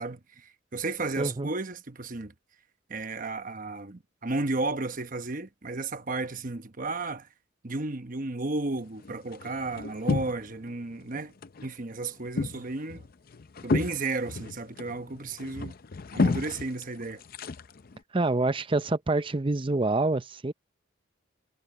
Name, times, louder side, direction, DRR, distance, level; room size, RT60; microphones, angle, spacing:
voice 1, 0.0-2.3 2.9-7.3 7.6-11.3 11.6-13.1 13.6-15.7 16.1-17.2, right 3 dB, 40° right, 1.1 m, -33 dB
voice 2, 1.2-1.5 18.1-20.5, right 2 dB, 25° right, 0.6 m, -26 dB
sound 1, 8.8-10.7 11.0-11.7 12.0-18.0, left 3 dB, 45° left, 0.5 m, -32 dB
head